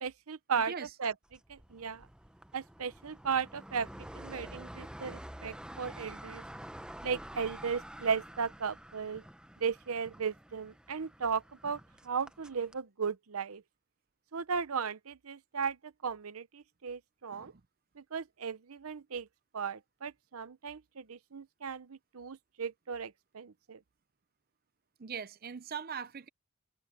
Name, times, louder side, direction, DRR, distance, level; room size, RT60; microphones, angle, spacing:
voice 1, 0.0-0.7 1.0-1.1 1.5-2.1 2.5-3.9 4.1-6.4 7.0-9.2 9.6-13.6 14.3-17.5 18.0-19.3 19.5-23.8, right 6 dB, 90° right, 0.8 m, -36 dB
sound 1, 1.3-12.8, right 1 dB, 5° right, 0.8 m, -49 dB
voice 2, 25.0-26.3, right 6 dB, 45° right, 0.6 m, -41 dB
open air
head